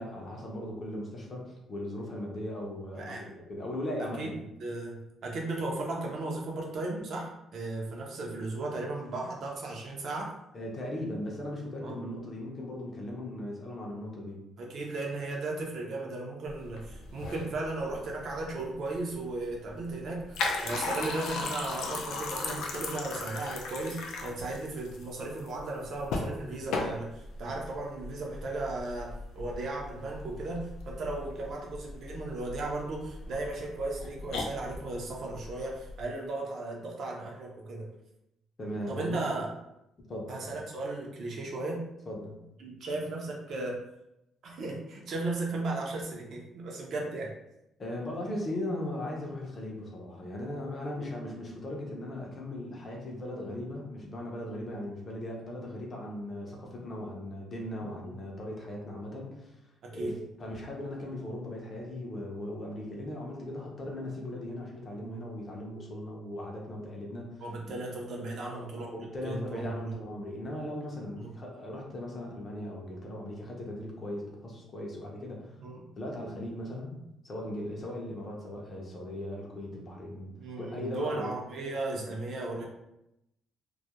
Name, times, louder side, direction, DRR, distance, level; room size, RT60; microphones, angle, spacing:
voice 1, 0.0-4.4 10.5-14.4 38.6-39.2 40.1-40.6 42.1-42.4 47.8-59.5 59.9-67.7 68.4-75.6 76.0-81.3 82.0-82.1, left 1 dB, 25° left, -1 dB, 0.5 m, -38 dB
voice 2, 4.6-10.3 11.8-12.0 14.6-37.9 38.9-39.5 40.3-41.9 42.6-43.8 44.4-47.3 57.8-58.2 59.8-60.2 67.4-70.0 71.2-71.4 75.6-75.9 80.4-82.6, right 2 dB, 50° right, -1 dB, 0.5 m, -36 dB
sound 1, 16.5-36.0, left 3 dB, 85° left, 0.4 m, -38 dB
2.3 x 2.1 x 2.8 m, 0.84 s
cardioid pair, 175°, 0 cm